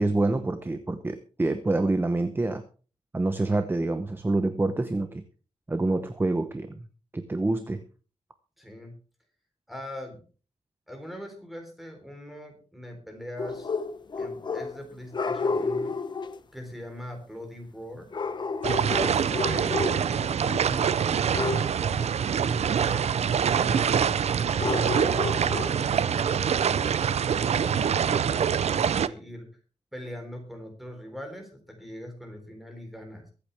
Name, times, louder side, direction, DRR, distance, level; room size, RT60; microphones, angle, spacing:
voice 1, 0.0-2.6 3.1-5.2 5.7-6.9 7.1-7.8, right 2 dB, 15° right, 9 dB, 0.9 m, -26 dB
voice 2, 8.6-8.9 9.7-10.2 10.9-13.7 14.2-16.0 16.5-18.1 18.9-21.2 21.5-23.1 23.5-27.0 27.5-29.5 29.9-33.3, equal, ahead, 3 dB, 3.8 m, -41 dB
sound 1, 13.4-14.8 15.1-16.4 18.1-20.2 20.4-20.7 21.3-21.8 24.6-25.9, left 4 dB, 35° left, 0.9 m, -31 dB
sound 2, 18.6-29.1, right 8 dB, 60° right, 0.5 m, -25 dB
23.0 x 8.5 x 3.4 m, 0.37 s
wide cardioid pair, 170°, 13 cm